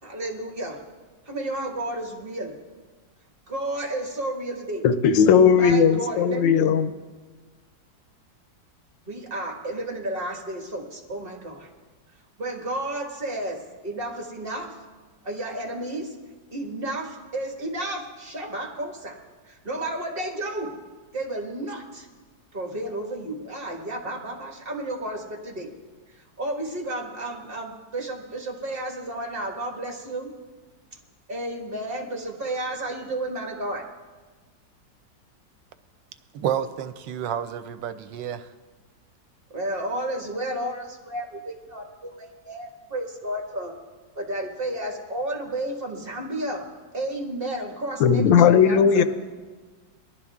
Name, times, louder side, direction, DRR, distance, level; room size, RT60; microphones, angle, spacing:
voice 1, 0.0-0.8 1.3-2.5 3.5-4.8 5.5-6.8 9.0-11.7 12.4-14.8 15.2-16.1 16.5-19.2 19.5-20.7 21.1-22.1 22.5-25.7 26.4-30.3 31.3-33.9 39.5-43.7 44.2-46.7 46.9-49.0, right 1 dB, 30° right, 0 dB, 1.9 m, -32 dB
voice 2, 4.8-6.9 48.0-49.0, left 7 dB, 85° left, 11 dB, 1.4 m, -17 dB
voice 3, 36.3-38.5, right 9 dB, 80° right, 12 dB, 1.3 m, -30 dB
20.0 x 12.0 x 3.6 m, 1.4 s
omnidirectional pair, 1.9 m